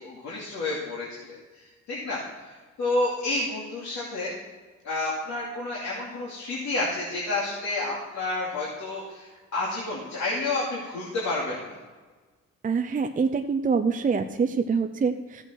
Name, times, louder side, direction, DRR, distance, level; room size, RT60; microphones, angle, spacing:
voice 1, 0.0-4.3 4.8-11.8, left 2 dB, 65° left, -5 dB, 2.6 m, -30 dB
voice 2, 12.6-15.4, right 5 dB, 25° right, 6 dB, 0.6 m, -25 dB
13.5 x 8.1 x 4.5 m, 1.4 s
cardioid pair, 90°, 30 cm